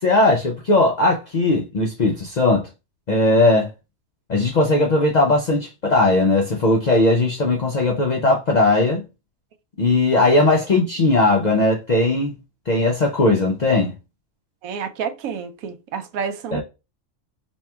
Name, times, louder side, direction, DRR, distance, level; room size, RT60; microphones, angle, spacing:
voice 1, 0.0-2.6 3.1-3.7 4.3-9.0 9.8-12.4 12.7-13.9 16.5-16.6, left 2 dB, 60° left, 0.4 m, -18 dB
voice 2, 14.6-16.6, right 6 dB, 90° right, 1.0 m, -29 dB
4.4 x 3.0 x 2.2 m
omnidirectional pair, 1.4 m